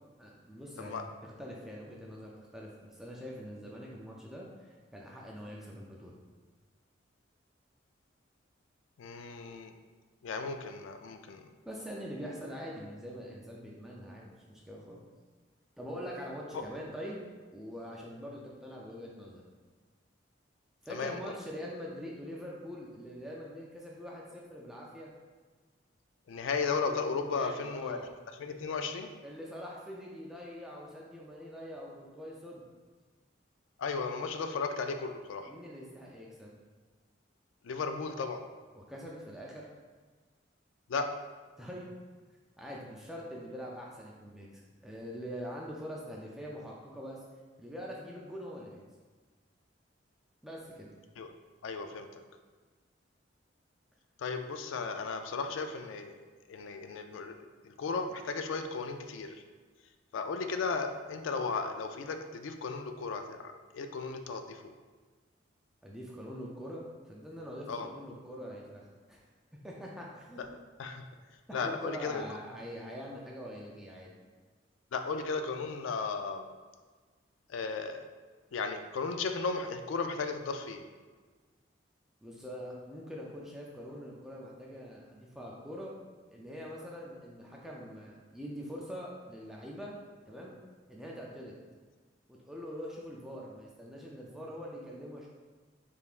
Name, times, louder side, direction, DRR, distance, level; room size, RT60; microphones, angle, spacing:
voice 1, 0.2-6.1 11.7-15.0 15.8-17.2 17.5-19.4 20.8-25.1 27.2-28.1 29.2-32.7 35.5-36.5 38.7-39.7 41.6-41.9 42.6-47.2 47.6-48.8 50.4-50.9 65.8-67.7 67.9-69.2 69.6-70.4 71.5-74.1 82.2-85.9 86.3-89.9 90.3-90.6 90.9-91.5 92.3-95.3, equal, ahead, -4 dB, 0.4 m, -44 dB
voice 2, 9.0-9.7 10.2-11.5 16.5-16.6 20.9-21.3 26.3-28.0 28.4-29.1 33.8-35.5 37.6-38.4 40.9-41.1 51.2-51.3 51.6-52.1 54.2-56.2 56.5-59.4 60.1-64.6 67.7-67.9 70.8-71.1 71.5-72.2 74.9-76.5 77.5-78.0 78.5-80.8, left 4 dB, 80° left, 7 dB, 0.3 m, -35 dB
5.2 x 3.4 x 2.4 m, 1.4 s
head